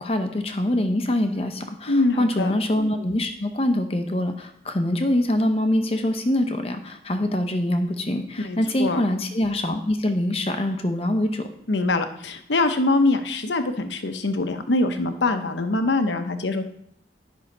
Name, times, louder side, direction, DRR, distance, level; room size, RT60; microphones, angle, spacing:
voice 1, 0.0-11.5, left 1 dB, 30° left, 6 dB, 0.7 m, -24 dB
voice 2, 1.9-2.5 8.4-9.0 11.7-16.6, left 2 dB, 80° left, 8 dB, 0.9 m, -23 dB
10.0 x 5.6 x 5.4 m, 0.73 s
head